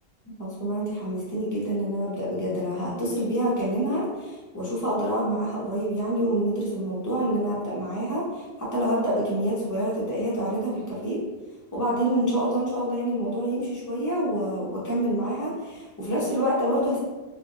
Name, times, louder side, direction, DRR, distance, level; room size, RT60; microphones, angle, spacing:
voice 1, 0.4-11.2 11.7-17.0, right 1 dB, 20° left, -7 dB, 0.7 m, -27 dB
2.7 x 2.5 x 2.5 m, 1.2 s
omnidirectional pair, 1.1 m